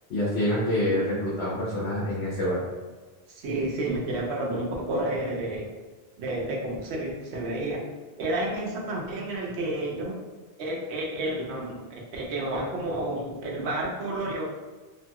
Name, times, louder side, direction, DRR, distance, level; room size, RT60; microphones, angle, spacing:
voice 1, 0.1-2.6, left 1 dB, 85° left, -7 dB, 1.1 m, -26 dB
voice 2, 3.3-5.7 6.2-7.8 8.2-10.2 10.6-14.4, right 1 dB, 90° right, -1 dB, 0.9 m, -30 dB
2.8 x 2.3 x 2.8 m, 1.3 s
omnidirectional pair, 1.1 m